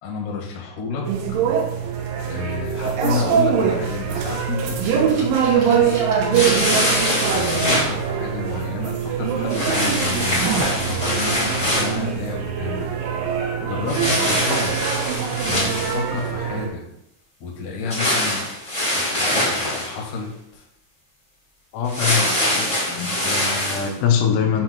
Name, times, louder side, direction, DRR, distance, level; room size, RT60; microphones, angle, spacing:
voice 1, 0.0-1.4 2.3-6.2 7.3-12.9 13.6-14.8 15.4-16.8 17.4-18.4 18.9-20.7, left 4 dB, 60° left, -3 dB, 2.3 m, -31 dB
sound 1, 1.1-16.7, right 7 dB, 85° right, 3.4 m, -23 dB
sound 2, 4.4-6.5 7.1-7.2 8.9-9.1 9.7-9.8 10.1-10.8, right 5 dB, 65° right, 1.3 m, -31 dB
sound 3, 6.3-7.9 9.5-12.0 13.9-16.2 17.9-19.9 21.8-23.9, left 1 dB, 20° left, 1.1 m, -23 dB
voice 2, 21.7-24.6, left 7 dB, 85° left, 2 dB, 3.2 m, -23 dB
7.8 x 2.9 x 5.9 m, 0.79 s
omnidirectional pair, 5.5 m